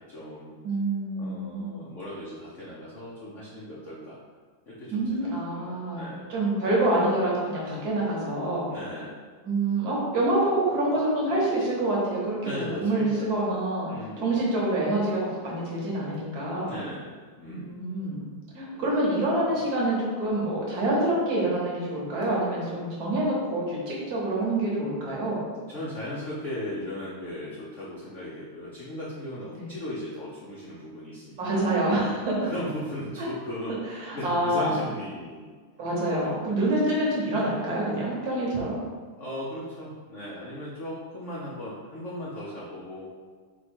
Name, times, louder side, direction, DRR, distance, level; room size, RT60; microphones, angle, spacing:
voice 1, 0.0-0.6 1.2-4.2 4.7-6.3 8.7-9.2 12.4-13.3 13.9-14.4 16.6-17.8 18.7-19.0 25.7-31.7 32.4-35.5 36.1-36.5 39.2-43.1, left 1 dB, 85° left, -6 dB, 0.6 m, -37 dB
voice 2, 0.6-1.8 4.9-6.0 6.3-8.7 9.4-13.9 14.2-16.7 17.4-18.3 18.5-25.4 29.5-29.6 31.4-32.4 34.0-34.7 35.8-38.8, right 1 dB, 55° right, -5 dB, 1.3 m, -26 dB
4.5 x 2.3 x 4.3 m, 1.5 s
omnidirectional pair, 2.2 m